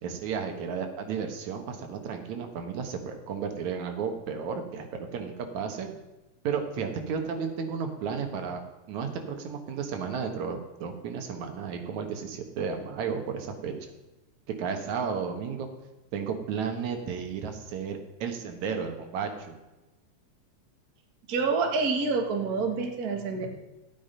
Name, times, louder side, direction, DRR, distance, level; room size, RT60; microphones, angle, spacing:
voice 1, 0.0-5.9 6.4-8.6 8.9-13.9 14.6-15.7 16.1-19.6, right 6 dB, 80° right, 5 dB, 2.6 m, -33 dB
voice 2, 21.3-23.5, right 4 dB, 40° right, 2 dB, 1.7 m, -27 dB
14.0 x 9.0 x 5.5 m, 1.0 s
omnidirectional pair, 3.3 m